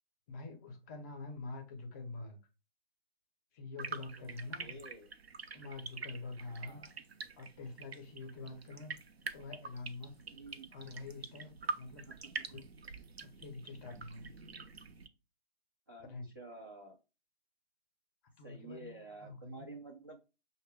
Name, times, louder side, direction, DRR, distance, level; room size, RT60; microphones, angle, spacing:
voice 1, 0.3-2.4 3.5-4.8 5.5-6.8 7.4-9.0 9.3-10.1 10.7-12.1 12.5-12.6 13.1-14.3 16.0-16.3 18.4-18.9 19.2-19.7, left 3 dB, 15° left, 0.6 m, -46 dB
sound 1, 3.8-15.1, right 4 dB, 80° right, 0.7 m, -46 dB
voice 2, 4.6-5.1 6.4-7.0 10.3-10.7 12.1-12.2 12.5-12.6 15.9-17.0 18.4-20.2, right 2 dB, 20° right, 0.3 m, -51 dB
6.2 x 2.1 x 3.5 m
figure-of-eight pair, 135°, 31 cm